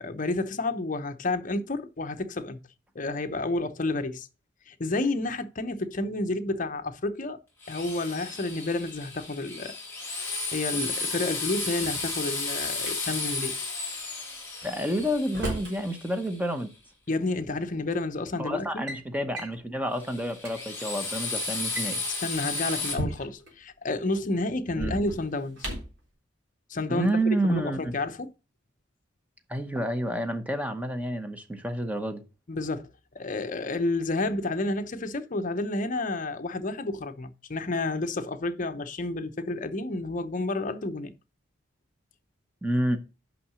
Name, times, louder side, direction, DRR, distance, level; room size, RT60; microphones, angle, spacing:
voice 1, 0.0-2.6 2.9-4.3 4.7-7.4 7.7-9.7 10.5-13.6 17.1-18.8 22.2-25.6 26.7-27.1 27.4-28.3 32.5-32.9 33.1-41.1, left 2 dB, 40° left, 0.7 m, -30 dB
Drill, 7.6-16.5 19.9-22.9, left 3 dB, 10° left, 3.2 m, -33 dB
Drawer open or close, 11.6-12.9 14.6-15.8 17.1-17.2 18.0-18.2 18.6-19.0 19.3-19.6 20.1-20.2 20.4-20.5 21.5-23.5 24.7-26.0, right 1 dB, 60° right, 3.5 m, -36 dB
voice 2, 14.6-16.7 18.4-22.0 24.7-25.0 26.9-27.9 29.5-32.2 42.6-43.0, right 1 dB, 10° right, 0.8 m, -29 dB
5.9 x 5.6 x 6.1 m
head